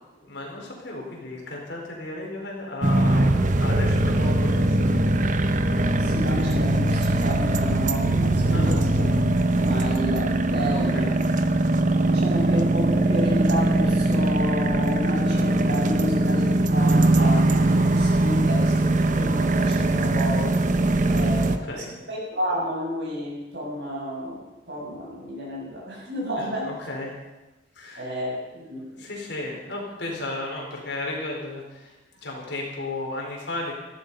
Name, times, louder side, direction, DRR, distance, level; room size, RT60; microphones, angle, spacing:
voice 1, 0.2-5.1 8.5-8.9 10.7-11.2 21.6-22.0 26.4-27.2 27.7-28.4 28.6-32.0 32.2-33.7, left 2 dB, 70° left, -1 dB, 4.5 m, -34 dB
sound 1, 2.8-21.6, right 2 dB, 45° right, 0.9 m, -21 dB
voice 2, 6.0-8.9 9.6-11.2 12.0-20.5 21.0-21.7 22.1-26.7 28.0-28.8, equal, 65° right, -4 dB, 7.0 m, -31 dB
17.0 x 14.0 x 5.5 m, 1.1 s
head